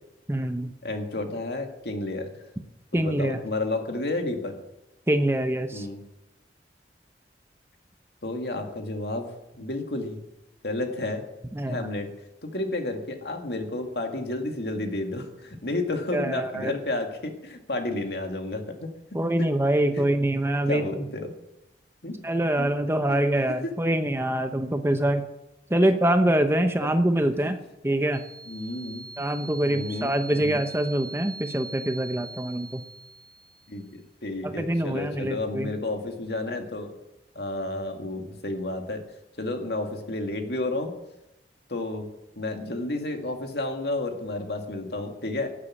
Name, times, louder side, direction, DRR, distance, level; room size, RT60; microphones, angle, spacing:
voice 1, 0.3-0.7 2.9-3.4 5.1-5.9 11.5-11.9 16.1-16.7 19.1-21.0 22.2-25.3 25.7-27.6 27.8-28.2 29.2-32.8 34.4-35.7, right 1 dB, 15° right, 8 dB, 0.8 m, -25 dB
voice 2, 0.8-2.3 2.9-4.6 5.7-6.0 8.2-9.3 9.6-10.2 10.6-11.2 11.7-12.1 12.4-18.9 19.4-19.5 19.9-20.1 20.7-21.3 22.0-22.1 22.6-22.7 23.6-23.7 26.8-26.9 27.3-27.5 28.5-29.1 29.6-30.6 33.7-36.9 37.4-39.0 39.4-40.9 41.7-42.1 42.4-45.5, left 2 dB, 70° left, 4 dB, 2.2 m, -31 dB
sound 1, 28.1-33.8, right 3 dB, 45° right, 3.4 m, -43 dB
12.5 x 8.3 x 8.5 m, 0.91 s
head